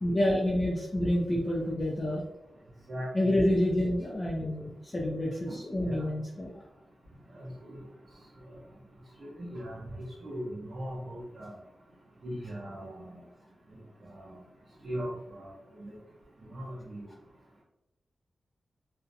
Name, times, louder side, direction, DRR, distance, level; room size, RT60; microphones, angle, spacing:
voice 1, 0.0-2.2 3.1-6.5, left 1 dB, 25° left, -3 dB, 0.3 m, -28 dB
voice 2, 2.9-3.3 5.5-6.0 7.3-7.8 9.2-11.5 12.2-13.2 14.1-14.3 14.8-15.5 15.8-15.9 16.5-17.1, equal, 45° right, -7 dB, 0.6 m, -39 dB
2.4 x 2.0 x 2.6 m, 0.94 s
wide cardioid pair, 165°, 0 cm